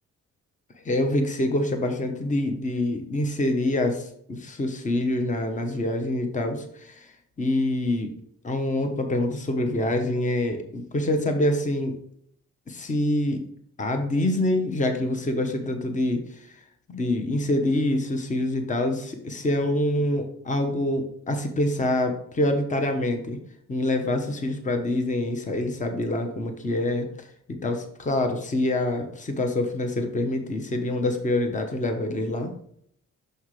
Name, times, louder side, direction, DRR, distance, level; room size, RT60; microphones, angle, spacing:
voice 1, 0.8-7.1 7.4-8.1 8.4-12.0 12.7-13.4 13.8-16.2 16.9-23.4 23.7-27.1 27.5-32.5, left 1 dB, 25° left, 6 dB, 1.0 m, -26 dB
6.6 x 5.6 x 3.2 m, 0.68 s
cardioid pair, 90°, 30 cm